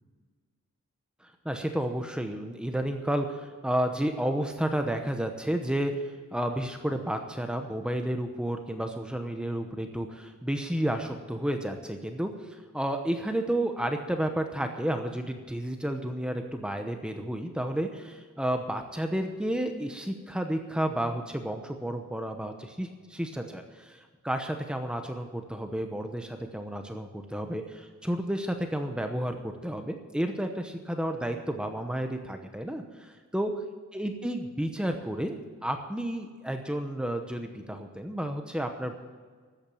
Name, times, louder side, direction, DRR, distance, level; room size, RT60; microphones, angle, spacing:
voice 1, 1.2-33.5 33.9-39.0, right 1 dB, 5° right, 5 dB, 0.8 m, -31 dB
13.0 x 8.8 x 8.7 m, 1.5 s
head